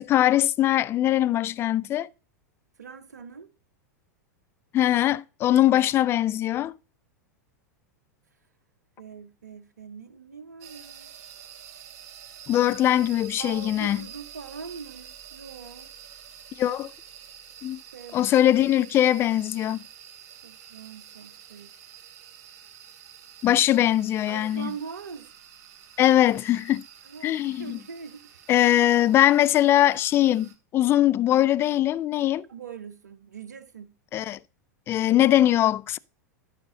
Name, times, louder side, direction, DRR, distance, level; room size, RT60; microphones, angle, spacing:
voice 1, 0.0-2.1 4.7-6.8 12.5-14.0 16.5-16.9 17.6-17.8 18.1-19.8 23.4-24.7 26.0-26.8 27.2-27.8 28.5-32.5 34.1-34.4 34.9-36.0, left 12 dB, 25° left, 0.3 m, -21 dB
voice 2, 2.8-3.5 9.0-11.1 13.4-15.9 17.9-18.2 20.4-21.7 24.3-25.3 27.0-28.5 32.5-33.9, right 6 dB, 75° right, 0.7 m, -42 dB
sound 1, 10.6-30.5, right 9 dB, 45° right, 2.1 m, -48 dB
12.0 x 5.0 x 4.0 m
figure-of-eight pair, 90°, 9 cm